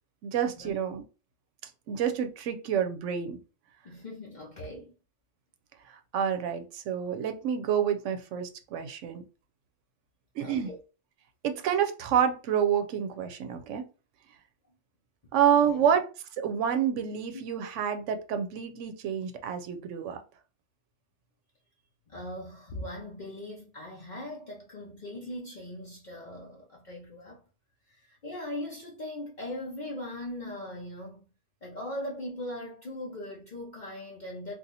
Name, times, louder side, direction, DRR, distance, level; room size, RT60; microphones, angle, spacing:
voice 1, 0.2-1.0 1.9-3.4 6.1-9.2 10.4-10.7 11.4-13.8 15.3-16.1 16.4-20.2, right 8 dB, 85° right, 0.9 m, -28 dB
voice 2, 3.8-4.9 10.4-10.8 15.6-16.0 17.3-17.4 22.1-27.4 27.9-31.2 31.6-34.5, left 1 dB, 45° left, 0.7 m, -40 dB
2.8 x 2.4 x 3.9 m
omnidirectional pair, 1.2 m